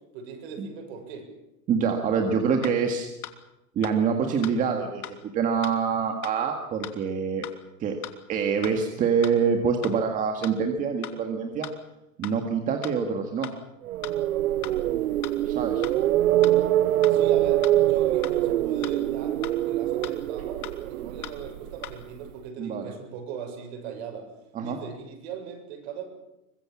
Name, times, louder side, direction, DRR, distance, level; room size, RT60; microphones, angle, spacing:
voice 1, 0.1-1.3 17.1-20.6 20.9-24.3 24.6-26.0, right 6 dB, 45° right, 5 dB, 7.1 m, -39 dB
voice 2, 1.7-3.1 3.8-7.5 7.8-8.0 8.3-11.7 12.2-13.5 15.4-15.9 22.6-22.9 24.5-24.8, right 6 dB, 20° right, 4 dB, 1.8 m, -26 dB
sound 1, 2.6-2.8 3.2-3.4 3.8-4.0 4.4-4.6 5.0-5.2 5.6-5.8 6.2-6.4 6.8-7.0 7.4-7.6 8.0-8.1 8.6-8.8 9.2-9.4 9.8-10.0 10.4-10.5 11.0-11.2 11.6-11.8 12.2-12.4 12.8-13.0 13.4-13.6 14.0-14.2 14.6-14.8 15.2-15.4 15.8-16.0 16.4-16.6 17.0-17.2 17.6-17.8 18.2-18.4 18.8-19.0 19.4-19.5 20.0-20.2 20.6-20.8 21.2-21.4 21.8-22.0, left 11 dB, 80° left, 3.1 m, -38 dB
sound 2, 13.9-21.9, right 13 dB, 70° right, 0.9 m, -24 dB
24.0 x 22.0 x 7.2 m, 0.92 s
supercardioid pair, 165°, 44 cm